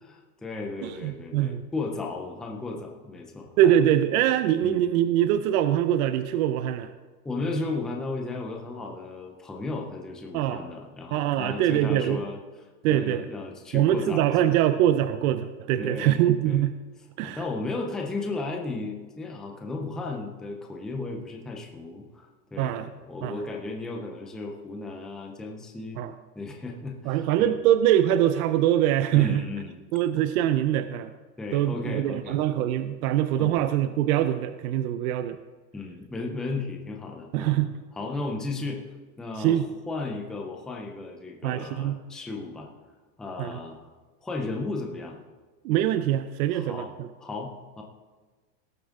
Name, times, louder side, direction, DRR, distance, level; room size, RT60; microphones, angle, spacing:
voice 1, 0.0-3.7 4.6-4.8 7.2-12.4 12.9-14.5 15.8-16.7 17.2-26.0 26.4-27.5 29.1-29.8 31.4-32.4 33.4-33.5 35.7-37.6 37.9-38.8 39.2-42.7 43.2-43.9 44.2-45.2 46.5-46.9 47.2-47.8, left 3 dB, ahead, 1 dB, 0.4 m, -35 dB
voice 2, 0.8-1.6 3.6-6.9 10.3-10.6 11.1-12.2 12.8-13.2 13.7-16.8 17.2-17.4 22.6-22.9 23.2-23.3 26.0-26.1 27.1-29.4 29.9-31.1 31.5-35.4 37.3-37.7 39.4-39.7 41.4-42.0 43.4-43.6 45.6-47.1, right 11 dB, 60° right, 11 dB, 0.7 m, -23 dB
18.0 x 7.0 x 3.6 m, 1.4 s
supercardioid pair, 140°, 50 cm